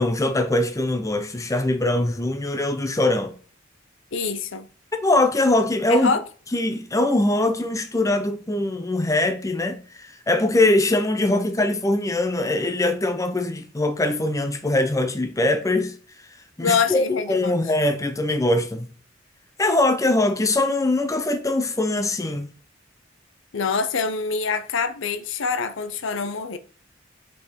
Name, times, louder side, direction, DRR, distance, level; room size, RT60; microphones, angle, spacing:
voice 1, 0.0-3.3 5.0-6.1 6.5-15.9 16.6-18.9 19.6-22.5, left 2 dB, 15° left, 0.7 m, -22 dB
voice 2, 4.1-4.7 5.9-6.2 16.6-17.6 23.5-26.6, left 5 dB, 70° left, 0.6 m, -25 dB
5.4 x 4.5 x 4.6 m
head